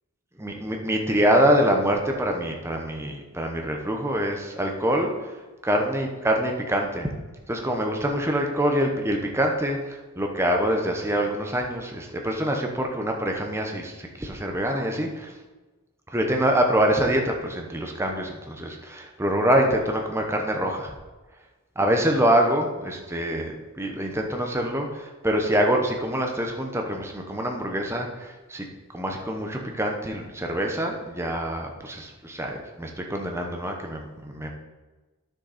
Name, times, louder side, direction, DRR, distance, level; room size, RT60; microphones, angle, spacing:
voice 1, 0.4-5.4 5.6-7.1 7.5-15.3 16.1-20.9 21.8-28.6 28.9-34.5, equal, 10° right, 2 dB, 0.9 m, -25 dB
10.5 x 6.4 x 4.2 m, 1.2 s
head